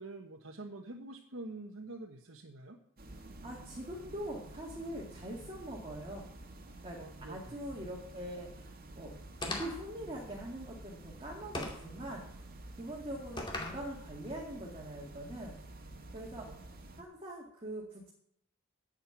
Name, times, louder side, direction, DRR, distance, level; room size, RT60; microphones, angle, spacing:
voice 1, 0.0-2.8 6.9-7.4 16.5-16.6, right 2 dB, 80° right, 2 dB, 1.2 m, -46 dB
sound 1, 3.0-17.0, right 2 dB, 45° right, 1.7 m, -50 dB
voice 2, 3.4-6.3 6.8-8.7 9.0-9.1 9.5-12.4 12.8-15.5 16.1-16.5 17.0-18.1, right 1 dB, 25° right, -2 dB, 2.1 m, -43 dB
sound 2, 9.4-9.9 11.6-11.9 13.4-13.8, left 2 dB, 25° left, 2.5 m, -38 dB
10.5 x 7.7 x 8.9 m, 0.72 s
head